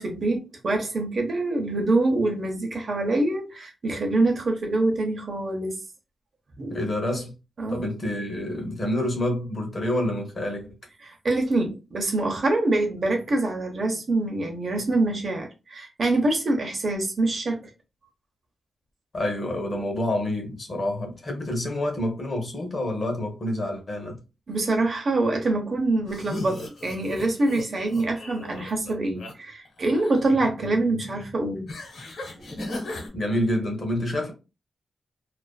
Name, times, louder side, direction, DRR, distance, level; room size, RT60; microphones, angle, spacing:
voice 1, 0.0-5.8 6.6-6.8 7.6-7.9 11.0-17.7 24.5-31.7 32.4-32.5, right 2 dB, 40° right, 0.6 m, -25 dB
voice 2, 6.7-7.3 7.7-10.8 19.1-24.2 33.1-34.3, left 1 dB, 35° left, 0.7 m, -28 dB
sound 1, 26.1-29.3 29.7-30.2 31.7-33.1, left 2 dB, 70° left, 1.1 m, -36 dB
2.4 x 2.3 x 2.3 m
wide cardioid pair, 175°, 0 cm